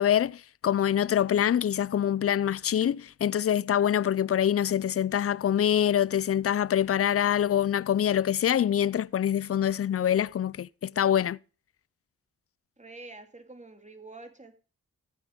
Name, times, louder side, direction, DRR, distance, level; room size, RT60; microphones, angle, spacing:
voice 1, 0.0-11.4, left 10 dB, 40° left, 0.5 m, -25 dB
voice 2, 12.8-14.5, right 3 dB, 20° right, 2.5 m, -46 dB
15.0 x 8.5 x 5.2 m
supercardioid pair, 45°, 35 cm